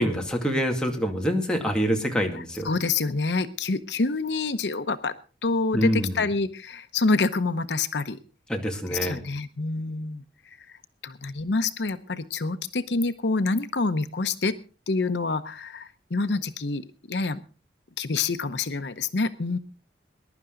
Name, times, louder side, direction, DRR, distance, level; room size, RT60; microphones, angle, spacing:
voice 1, 0.0-2.7 5.7-6.2 8.5-9.2, equal, 5° left, 1 dB, 2.2 m, -26 dB
voice 2, 2.4-5.1 5.4-8.2 8.9-10.2 10.7-14.6 14.9-17.4 18.0-19.6, left 3 dB, 75° left, 11 dB, 0.8 m, -27 dB
21.0 x 11.0 x 3.8 m, 0.35 s
head